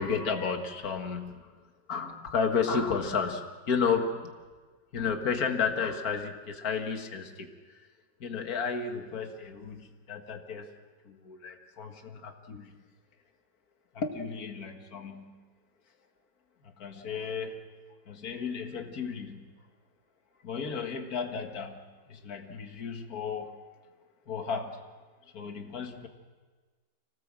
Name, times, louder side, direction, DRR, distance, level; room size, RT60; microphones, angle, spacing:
voice 1, 0.0-1.5 1.9-4.3 4.9-7.9 8.2-10.7 11.1-12.7 13.9-15.4 16.6-17.6 18.1-19.5 20.4-21.8 22.1-23.6 24.3-24.8 25.3-26.1, left 5 dB, 50° left, 4 dB, 2.2 m, -33 dB
26.5 x 18.0 x 7.6 m, 1.4 s
omnidirectional pair, 2.0 m